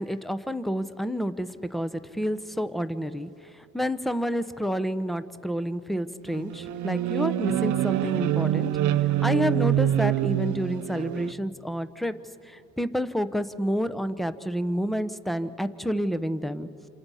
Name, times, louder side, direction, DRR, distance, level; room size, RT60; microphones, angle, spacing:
voice 1, 0.0-8.7 9.0-12.2 12.4-16.7, equal, ahead, 12 dB, 0.8 m, -29 dB
sound 1, 6.3-11.3, right 12 dB, 75° right, 0.7 m, -25 dB
28.0 x 27.5 x 5.6 m, 2.8 s
cardioid pair, 90°, 30 cm